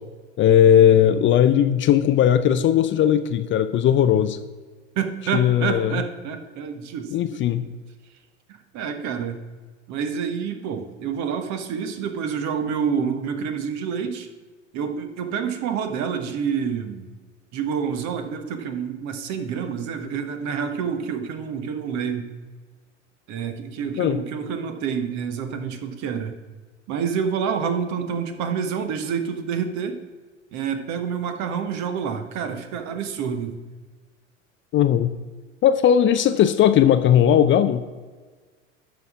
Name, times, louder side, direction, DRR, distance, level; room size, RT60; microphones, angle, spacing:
voice 1, 0.4-4.4 5.3-6.0 7.1-7.6 24.0-24.2 34.7-35.1 35.6-37.8, left 9 dB, 30° left, 10 dB, 0.5 m, -17 dB
voice 2, 4.9-7.4 8.7-9.4 9.9-14.3 14.7-17.1 17.5-22.3 23.3-26.3 26.9-30.0 30.5-33.6, right 7 dB, 50° right, 8 dB, 1.3 m, -28 dB
11.5 x 4.1 x 6.1 m, 1.4 s
hypercardioid pair, 80°, 37 cm